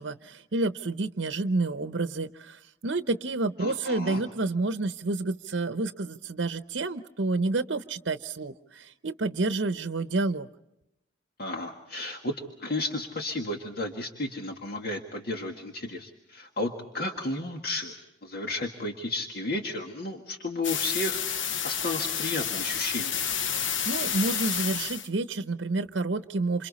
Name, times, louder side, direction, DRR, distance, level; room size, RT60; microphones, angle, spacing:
voice 1, 0.0-10.5 23.5-26.7, right 3 dB, 70° right, 10 dB, 0.8 m, -29 dB
voice 2, 3.6-4.2 11.4-12.3 12.6-17.9 18.2-23.2, left 2 dB, 55° left, 2 dB, 1.9 m, -33 dB
sound 1, 20.6-25.1, left 8 dB, 85° left, 1.0 m, -30 dB
28.0 x 28.0 x 4.2 m, 0.90 s
head